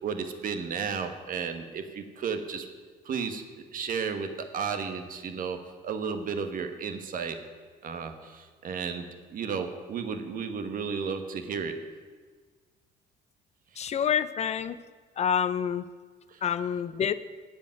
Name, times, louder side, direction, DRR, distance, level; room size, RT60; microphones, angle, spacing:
voice 1, 0.0-2.7 3.0-3.4 3.7-7.4 7.8-9.1 9.3-11.8 13.7-14.0 16.3-16.4, right 6 dB, 55° right, 7 dB, 1.4 m, -33 dB
voice 2, 13.8-14.8 15.2-15.8 16.4-17.1, left 8 dB, 40° left, 15 dB, 0.5 m, -27 dB
15.5 x 5.2 x 9.3 m, 1.5 s
cardioid pair, 110°, 17 cm